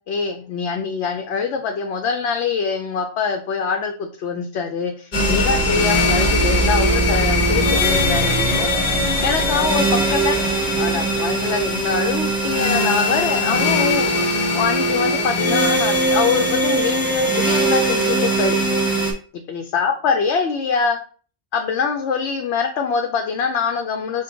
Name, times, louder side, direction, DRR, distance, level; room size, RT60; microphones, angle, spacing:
voice 1, 0.1-8.7 9.2-10.4 10.8-18.6 19.5-21.0 21.5-24.2, left 5 dB, 80° left, 4 dB, 0.9 m, -24 dB
sound 1, 5.1-19.1, equal, 40° left, 1.3 m, -20 dB
5.2 x 2.3 x 3.8 m, 0.41 s
omnidirectional pair, 1.1 m